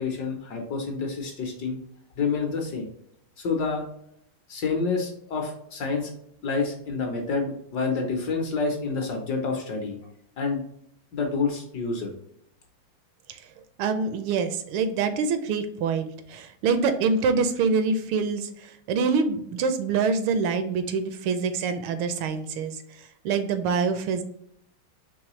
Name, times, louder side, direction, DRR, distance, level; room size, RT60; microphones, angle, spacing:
voice 1, 0.0-1.8 2.2-2.9 3.4-3.8 4.5-6.1 6.4-10.0 10.4-10.6 11.1-12.1, left 4 dB, 65° left, 2 dB, 1.2 m, -28 dB
voice 2, 13.8-24.2, right 5 dB, 85° right, 8 dB, 1.4 m, -26 dB
4.7 x 3.2 x 3.0 m, 0.71 s
omnidirectional pair, 2.3 m